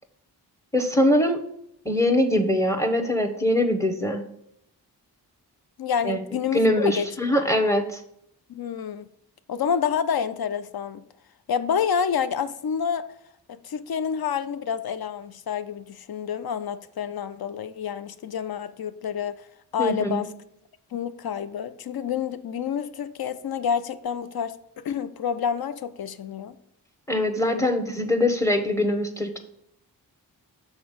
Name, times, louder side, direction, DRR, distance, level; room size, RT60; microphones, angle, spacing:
voice 1, 0.7-1.4 1.8-4.2 6.0-6.2 6.5-8.0 19.8-20.2 27.1-29.4, left 1 dB, 5° left, 7 dB, 0.9 m, -22 dB
voice 2, 5.8-7.1 8.5-9.1 9.5-11.0 11.5-13.1 13.5-19.4 19.7-20.3 20.9-24.5 24.8-26.6 27.5-27.7, left 7 dB, 60° left, 13 dB, 0.5 m, -28 dB
6.0 x 4.0 x 5.0 m, 0.76 s
cardioid pair, 50°, 41 cm